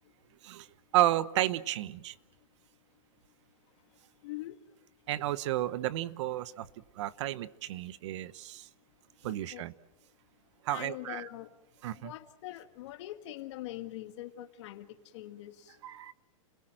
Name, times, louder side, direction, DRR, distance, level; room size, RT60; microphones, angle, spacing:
voice 1, 0.9-2.1 5.1-6.7 7.0-8.7 9.2-9.7 10.6-11.3 11.8-12.1 15.8-16.1, right 14 dB, 55° right, 0.9 m, -32 dB
voice 2, 4.2-4.6 9.2-9.6 10.7-11.5 12.0-14.9 15.1-15.7, left 15 dB, 55° left, 1.9 m, -43 dB
30.0 x 17.0 x 7.7 m
hypercardioid pair, 140°, 18 cm